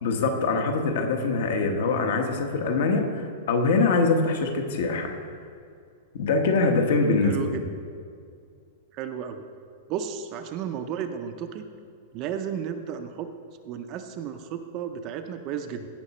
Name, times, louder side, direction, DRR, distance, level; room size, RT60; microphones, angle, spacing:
voice 1, 0.0-5.2 6.1-7.6, left 3 dB, 55° left, 5 dB, 1.2 m, -24 dB
voice 2, 7.2-7.6 8.9-9.5 9.9-11.6 12.1-13.3 13.6-15.9, right 8 dB, 25° right, 7 dB, 0.5 m, -33 dB
16.5 x 5.9 x 4.2 m, 2.3 s
supercardioid pair, 180°, 0 cm